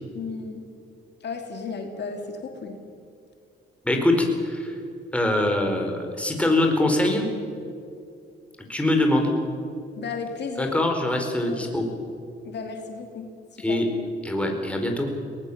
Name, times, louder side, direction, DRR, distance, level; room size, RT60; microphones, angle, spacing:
voice 1, 0.1-0.6 1.2-2.8 10.0-10.7 11.4-11.6 12.4-13.8, left 5 dB, 60° left, 4 dB, 2.7 m, -34 dB
voice 2, 3.8-4.8 5.1-7.2 8.7-9.3 10.6-11.8 13.6-13.9 14.2-15.1, left 1 dB, 5° left, 2 dB, 4.7 m, -23 dB
22.5 x 19.5 x 7.3 m, 2.4 s
cardioid pair, 90°, 20 cm